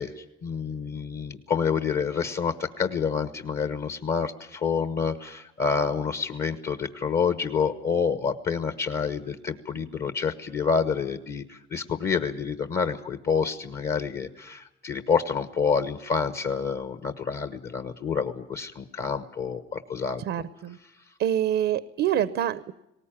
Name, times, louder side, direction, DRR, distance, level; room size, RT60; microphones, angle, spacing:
voice 1, 0.0-20.2, left 6 dB, 55° left, 10 dB, 1.2 m, -28 dB
voice 2, 20.2-20.8 21.2-22.7, right 10 dB, 80° right, 15 dB, 0.8 m, -26 dB
19.5 x 18.5 x 9.0 m, 0.88 s
cardioid pair, 90°, 20 cm